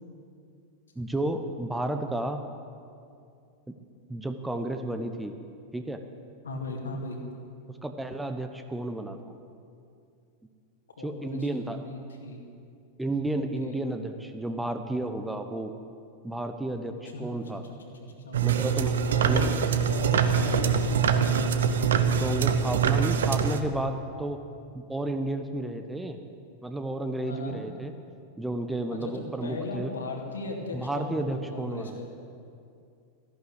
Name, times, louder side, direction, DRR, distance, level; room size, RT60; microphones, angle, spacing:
voice 1, 1.0-2.4 4.1-5.4 5.7-6.0 7.8-9.2 11.0-11.8 13.0-15.8 16.2-17.6 18.4-19.0 19.2-19.5 22.2-24.4 24.9-26.2 26.6-27.9 28.4-29.9 30.7-32.0, right 1 dB, 5° right, 7 dB, 0.9 m, -32 dB
voice 2, 6.4-7.2 11.0-12.4 13.3-13.8 16.8-17.4 17.7-21.8 27.2-27.6 28.9-32.1, left 2 dB, 70° left, 2 dB, 2.2 m, -37 dB
sound 1, 18.3-23.6, right 7 dB, 65° right, 0.9 m, -24 dB
14.5 x 11.5 x 8.0 m, 2.4 s
figure-of-eight pair, 90°, 0 cm